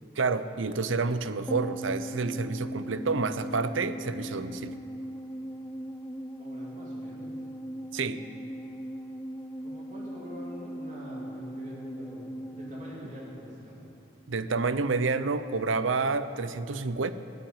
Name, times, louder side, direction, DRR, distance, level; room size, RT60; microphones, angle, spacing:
voice 1, 0.2-4.8 7.9-8.2 14.3-17.1, right 4 dB, 80° right, 12 dB, 0.7 m, -29 dB
sound 1, 1.5-14.0 14.3-14.4, right 1 dB, 10° left, 0.4 m, -39 dB
voice 2, 6.1-7.3 9.6-13.7, equal, 35° right, -6 dB, 3.2 m, -45 dB
16.0 x 7.9 x 8.9 m, 2.7 s
head